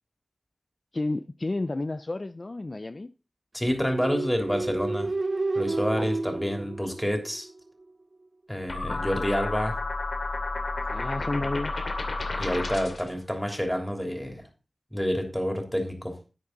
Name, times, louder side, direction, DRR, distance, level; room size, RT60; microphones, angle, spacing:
voice 1, 0.9-3.1 6.0-6.1 8.9-9.0 10.9-11.8, left 2 dB, 45° left, 0.5 m, -31 dB
voice 2, 3.5-5.1 5.5-7.5 8.5-9.8 12.4-14.4 14.9-16.1, equal, 5° left, 3.2 m, -28 dB
sound 1, 3.7-7.6, right 2 dB, 50° right, 0.4 m, -30 dB
sound 2, 8.7-13.1, left 3 dB, 70° left, 2.6 m, -31 dB
11.0 x 9.6 x 3.9 m
wide cardioid pair, 80°, 0 cm